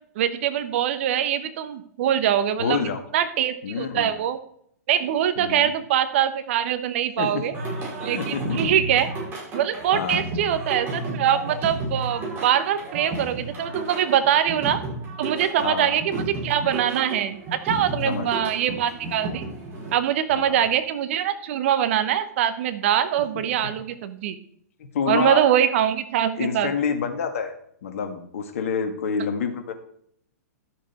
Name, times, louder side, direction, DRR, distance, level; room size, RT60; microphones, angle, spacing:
voice 1, 0.2-2.8 3.1-4.4 4.9-7.5 8.0-9.1 9.5-14.8 15.2-19.4 19.9-24.4 25.1-26.7, right 10 dB, 50° right, 11 dB, 1.0 m, -23 dB
voice 2, 2.6-3.0 3.6-4.1 5.4-5.7 7.2-7.4 8.1-8.6 9.9-10.3 15.6-16.0 18.0-18.5 20.3-20.7 24.8-25.4 26.4-27.5 27.8-29.7, left 6 dB, 55° left, 6 dB, 1.8 m, -27 dB
Singing, 7.5-19.9, right 2 dB, 25° right, 5.2 m, -32 dB
12.0 x 7.1 x 4.6 m, 0.66 s
figure-of-eight pair, 110°, 9 cm